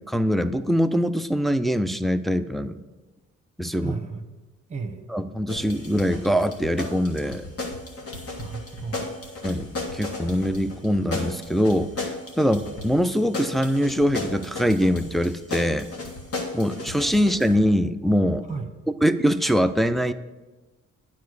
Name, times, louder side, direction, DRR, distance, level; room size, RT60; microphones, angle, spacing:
voice 1, 0.1-2.8 3.6-4.0 5.1-7.5 9.4-15.9 16.5-18.5 19.0-20.1, equal, ahead, 8 dB, 0.3 m, -23 dB
voice 2, 3.8-4.2 4.7-5.0 8.1-9.2 18.4-18.7, right 4 dB, 25° right, 6 dB, 1.1 m, -34 dB
sound 1, 5.5-17.6, left 2 dB, 50° left, 1.8 m, -35 dB
9.4 x 4.2 x 6.6 m, 1.2 s
cardioid pair, 90°, 30 cm